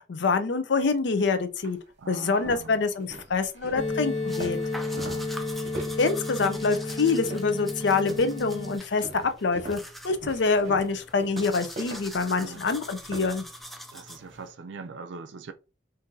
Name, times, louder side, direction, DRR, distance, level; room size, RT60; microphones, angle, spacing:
voice 1, 0.0-1.8 2.1-4.6 6.0-13.4, left 4 dB, 60° left, 0.5 m, -26 dB
sound 1, 1.0-1.1 1.6-1.8 2.2-7.7 8.1-8.5 9.0-13.4, right 2 dB, 35° right, 1.0 m, -41 dB
voice 2, 2.0-2.8 4.9-5.3 12.4-12.7 13.9-15.5, right 4 dB, 65° right, 0.5 m, -42 dB
sound 2, 3.8-8.8, left 2 dB, 40° left, 1.3 m, -32 dB
sound 3, 4.3-14.5, equal, ahead, 0.4 m, -44 dB
2.6 x 2.6 x 3.8 m
head